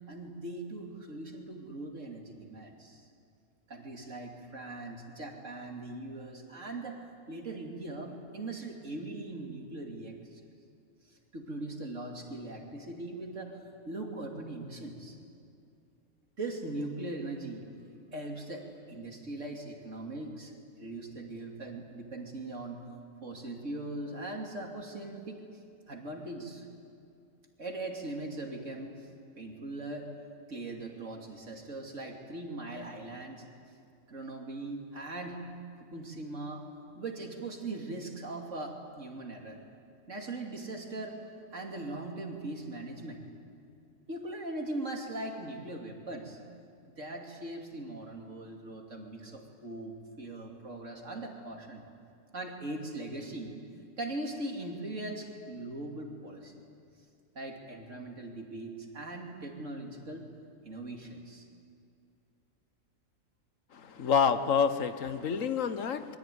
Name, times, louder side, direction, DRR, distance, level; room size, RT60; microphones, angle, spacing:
voice 1, 0.1-3.1 3.7-10.4 11.1-15.2 16.4-17.7 18.1-20.5 20.8-22.8 23.2-25.4 25.9-26.7 27.6-29.1 29.4-30.1 30.5-33.4 34.1-35.4 35.8-36.6 36.9-39.6 40.1-41.2 41.5-43.2 44.1-46.4 47.0-51.8 52.3-53.6 54.0-56.6 57.3-60.3 60.6-61.5, right 2 dB, 70° right, 1 dB, 3.2 m, -40 dB
voice 2, 63.7-66.2, left 6 dB, 80° left, 10 dB, 1.5 m, -28 dB
25.5 x 22.5 x 9.4 m, 2.5 s
omnidirectional pair, 1.3 m